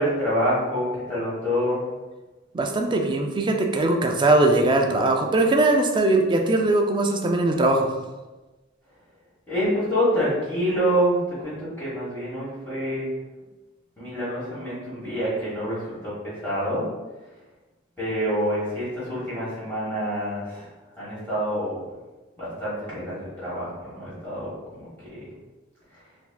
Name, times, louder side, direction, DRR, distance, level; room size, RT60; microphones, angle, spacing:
voice 1, 0.0-1.8 9.5-13.1 14.0-16.8 18.0-20.7 21.0-21.8 22.4-25.3 25.9-26.0, equal, 10° left, -11 dB, 1.3 m, -27 dB
voice 2, 2.5-7.9, right 2 dB, 25° right, 3 dB, 0.3 m, -20 dB
4.0 x 2.7 x 2.2 m, 1.2 s
head